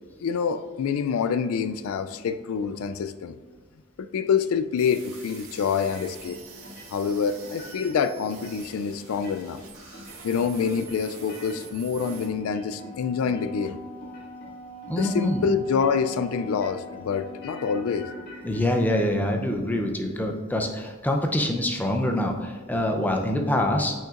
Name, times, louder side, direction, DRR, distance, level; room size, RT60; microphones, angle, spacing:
voice 1, 0.2-3.3 4.0-6.4 6.9-9.6 10.2-13.8 14.9-18.1, left 6 dB, 75° left, 0.3 m, -26 dB
sound 1, 4.8-12.3, right 4 dB, 75° right, 1.8 m, -46 dB
sound 2, 5.8-6.4 6.6-8.0 8.3-8.8 9.1-9.6 9.9-10.5 10.7-12.9 13.2-13.7 14.0-14.5 14.8-15.3 15.7-16.2 16.5-18.6, left 1 dB, 50° left, 1.8 m, -45 dB
Wind instrument woodwind instrument, 12.0-18.3, right 1 dB, 30° left, 1.4 m, -43 dB
voice 2, 14.9-15.4 18.4-23.9, left 1 dB, 10° left, 0.5 m, -25 dB
8.8 x 5.8 x 2.5 m
head